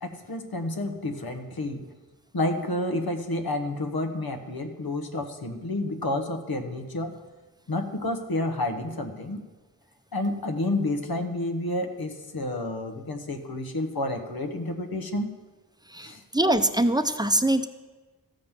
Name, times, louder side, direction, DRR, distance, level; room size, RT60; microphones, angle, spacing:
voice 1, 0.0-1.8 2.3-7.1 7.7-9.4 10.1-15.3 16.0-16.2, left 1 dB, 85° left, 6 dB, 1.1 m, -30 dB
voice 2, 15.9-17.7, right 1 dB, 10° right, 9 dB, 0.6 m, -23 dB
13.5 x 5.2 x 7.3 m, 1.3 s
wide cardioid pair, 55°, 35 cm